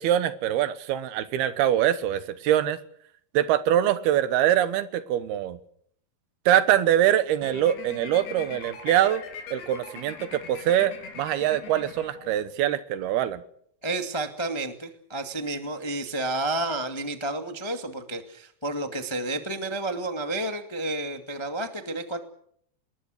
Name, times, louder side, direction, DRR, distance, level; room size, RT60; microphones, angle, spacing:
voice 1, 0.0-2.8 3.3-5.6 6.5-9.2 9.5-13.4, right 11 dB, 80° right, 13 dB, 3.1 m, -23 dB
sound 1, 7.4-12.6, left 6 dB, 70° left, 4.5 m, -42 dB
voice 2, 13.8-22.2, right 2 dB, 25° left, 6 dB, 0.6 m, -31 dB
29.0 x 20.5 x 6.6 m, 0.66 s
omnidirectional pair, 4.6 m